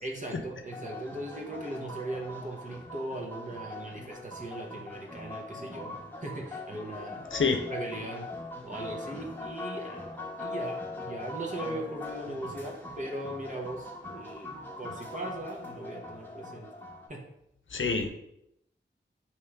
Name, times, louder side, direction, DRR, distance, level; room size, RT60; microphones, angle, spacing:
voice 1, 0.0-5.9 6.2-7.4 7.7-8.3 8.6-16.7 17.1-17.3, right 1 dB, 40° right, -2 dB, 0.8 m, -39 dB
sound 1, 0.7-17.1, left 2 dB, 10° left, 1.1 m, -41 dB
voice 2, 7.3-7.6 17.7-18.1, left 4 dB, 75° left, 5 dB, 0.6 m, -26 dB
3.6 x 3.0 x 4.5 m, 0.80 s
wide cardioid pair, 60°, 20 cm